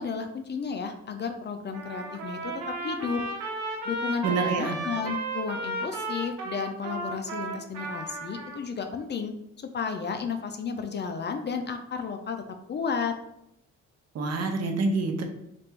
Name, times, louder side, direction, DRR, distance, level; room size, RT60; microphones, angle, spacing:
voice 1, 0.0-3.2 3.8-9.3 9.7-12.4 12.7-13.1, left 5 dB, 35° left, 6 dB, 0.5 m, -32 dB
Trumpet, 1.7-8.6, right 3 dB, 85° right, 1.0 m, -34 dB
voice 2, 4.2-4.8 14.1-15.2, right 3 dB, 55° right, 5 dB, 0.7 m, -27 dB
3.3 x 2.5 x 4.4 m, 0.83 s
cardioid pair, 90°, 30 cm